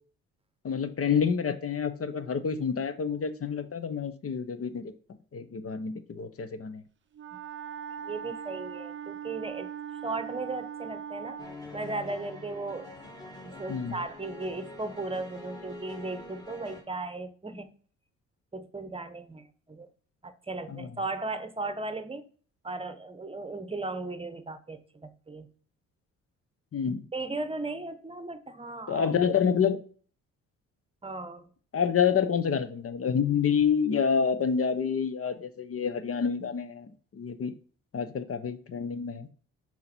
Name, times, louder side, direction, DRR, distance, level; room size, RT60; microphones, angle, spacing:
voice 1, 0.6-4.9 5.3-6.8 13.7-14.0 20.7-20.9 26.7-27.0 28.9-29.8 31.7-37.5 37.9-39.3, left 7 dB, 40° left, 1.0 m, -28 dB
Wind instrument woodwind instrument, 7.1-11.6, right 8 dB, 35° right, 0.6 m, -40 dB
voice 2, 8.0-9.7 10.0-11.4 11.7-12.9 13.4-17.7 18.5-19.9 20.2-22.2 22.6-25.5 27.1-29.1 31.0-31.5, right 3 dB, 15° right, 1.0 m, -36 dB
sound 1, 11.4-16.8, left 2 dB, 10° left, 2.3 m, -45 dB
6.3 x 4.2 x 4.5 m
supercardioid pair, 60°, 34 cm